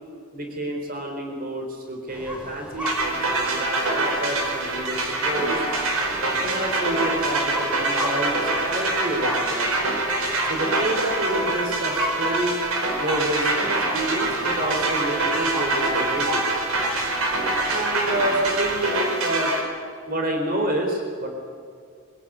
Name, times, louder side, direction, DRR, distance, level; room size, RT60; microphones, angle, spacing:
voice 1, 0.3-5.6 6.4-10.0 10.4-12.6 13.0-16.4 17.7-19.5 20.1-21.3, right 1 dB, 40° right, 2 dB, 4.3 m, -28 dB
sound 1, 2.1-18.9, left 1 dB, 5° right, 5.4 m, -36 dB
sound 2, 2.9-19.6, right 2 dB, 80° right, 4.7 m, -25 dB
24.5 x 16.5 x 9.5 m, 2.2 s
head